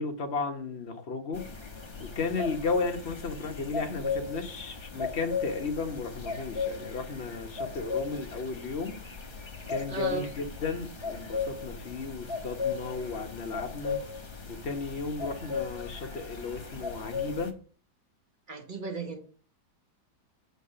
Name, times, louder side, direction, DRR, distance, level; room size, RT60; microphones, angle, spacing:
voice 1, 0.0-1.5 2.0-9.0 9.7-14.0 14.5-17.6, left 4 dB, 40° left, 1.2 m, -34 dB
sound 1, 1.3-17.5, left 5 dB, 25° left, 0.6 m, -36 dB
voice 2, 9.9-10.3 18.5-19.2, right 3 dB, 30° right, 1.1 m, -35 dB
8.1 x 4.7 x 6.8 m
omnidirectional pair, 2.0 m